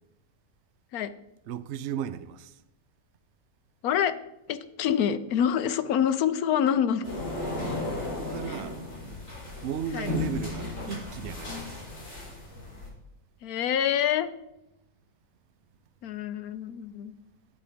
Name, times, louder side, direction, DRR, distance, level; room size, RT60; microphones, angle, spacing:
voice 1, 1.5-2.5 8.0-8.8 9.6-11.7, right 8 dB, 65° right, 0.7 m, -35 dB
voice 2, 3.8-4.1 4.5-7.1 8.5-8.6 9.9-10.1 13.4-14.3 16.0-17.1, left 9 dB, 70° left, 1.1 m, -26 dB
sound 1, 7.0-12.9, left 2 dB, 40° left, 4.1 m, -35 dB
9.7 x 8.5 x 5.1 m
omnidirectional pair, 1.7 m